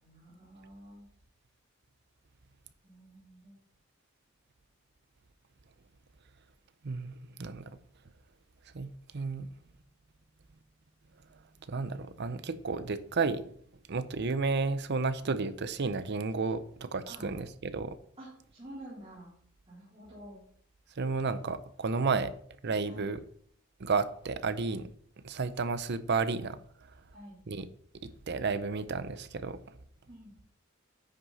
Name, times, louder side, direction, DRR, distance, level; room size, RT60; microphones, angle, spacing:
voice 1, 0.0-1.1 2.8-3.5 17.1-17.3 18.2-19.3 19.7-20.4 22.8-23.1 27.1-27.4 30.1-30.3, equal, 30° right, 3.6 m, -49 dB
voice 2, 6.8-7.6 8.7-9.5 11.7-13.5 13.9-18.0 21.0-22.3 22.6-23.2 23.8-24.9 25.2-26.6 27.5-27.7 28.0-29.6, right 4 dB, 55° right, 0.6 m, -32 dB
9.6 x 6.3 x 4.1 m
head